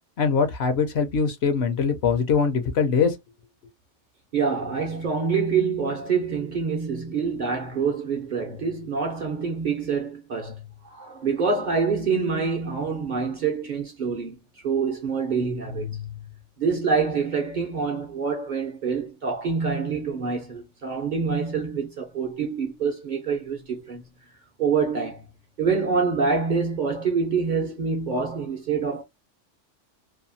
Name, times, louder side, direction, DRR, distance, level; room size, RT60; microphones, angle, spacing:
voice 1, 0.2-3.1, left 5 dB, 65° left, 0.8 m, -22 dB
voice 2, 4.3-14.3 14.6-16.3 16.6-24.0 24.6-25.2 25.6-29.0, right 5 dB, 50° right, 0.6 m, -26 dB
2.7 x 2.2 x 2.6 m
omnidirectional pair, 1.2 m